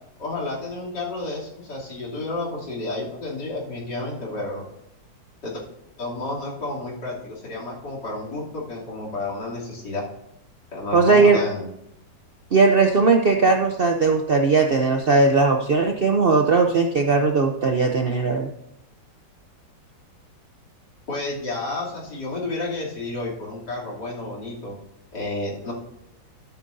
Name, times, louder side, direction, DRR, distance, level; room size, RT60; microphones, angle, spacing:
voice 1, 0.2-4.7 5.4-5.6 6.0-10.0 10.7-11.7 21.1-24.7 25.1-25.7, left 2 dB, 65° left, -5 dB, 3.5 m, -31 dB
voice 2, 10.9-11.4 12.5-18.5, right 4 dB, 80° right, 3 dB, 0.5 m, -18 dB
13.0 x 9.3 x 2.6 m, 0.82 s
omnidirectional pair, 2.0 m